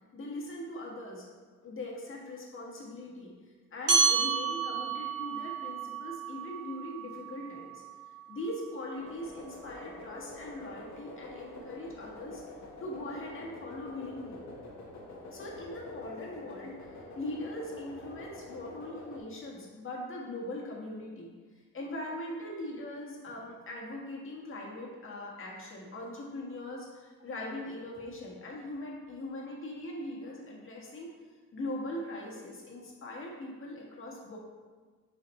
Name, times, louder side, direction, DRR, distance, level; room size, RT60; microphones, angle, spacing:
voice 1, 0.1-1.3 1.6-3.3 3.7-7.8 8.3-12.4 12.8-14.4 15.3-21.3 21.7-31.1 31.5-34.4, left 1 dB, 45° left, -2 dB, 1.7 m, -41 dB
sound 1, 3.9-8.7, right 5 dB, 80° right, 1.8 m, -31 dB
sound 2, 8.9-19.2, left 2 dB, 65° left, 1.3 m, -46 dB
7.8 x 4.8 x 3.2 m, 1.4 s
cardioid pair, 90°, 30 cm